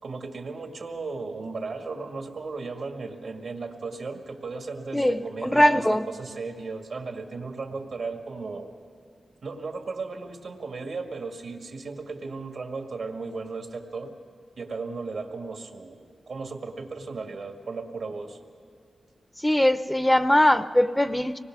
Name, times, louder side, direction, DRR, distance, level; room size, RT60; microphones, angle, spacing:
voice 1, 0.0-8.7 9.4-14.1 14.6-18.4, right 4 dB, 75° right, 2.0 m, -35 dB
voice 2, 4.9-6.1 19.4-21.4, left 1 dB, 10° left, 0.6 m, -21 dB
25.0 x 19.5 x 6.2 m
cardioid pair, 65°, 0 cm